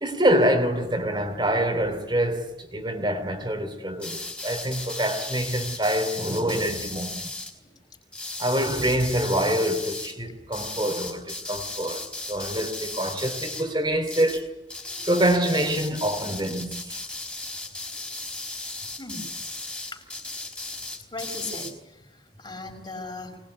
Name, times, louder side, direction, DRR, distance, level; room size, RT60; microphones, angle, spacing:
voice 1, 0.0-7.3 8.4-12.0 12.3-14.5 15.0-17.0, right 1 dB, 25° right, 2.9 m, -25 dB
sound 1, 4.0-7.5 8.1-10.1 10.5-13.7 14.0-14.4 14.7-21.7, left 2 dB, 5° left, 4.2 m, -36 dB
voice 2, 21.1-23.4, left 2 dB, 25° left, 5.4 m, -38 dB
24.0 x 20.5 x 9.7 m
head